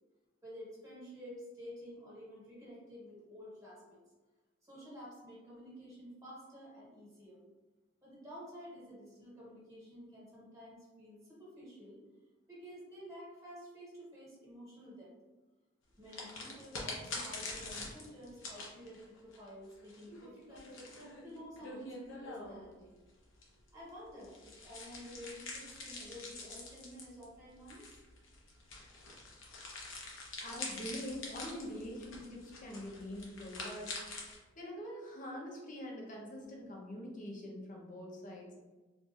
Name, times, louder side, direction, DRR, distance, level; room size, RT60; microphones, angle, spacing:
voice 1, 0.4-4.0 4.6-7.4 8.0-12.0 12.5-15.1 16.0-20.8 21.2-22.9 23.7-28.0, equal, 15° right, -8 dB, 1.4 m, -51 dB
sound 1, 16.1-22.7 23.3-34.4, left 3 dB, 75° left, 0.8 m, -46 dB
voice 2, 30.4-34.0 34.5-38.6, equal, 40° left, -1 dB, 0.7 m, -44 dB
4.1 x 2.6 x 2.4 m, 1.2 s
head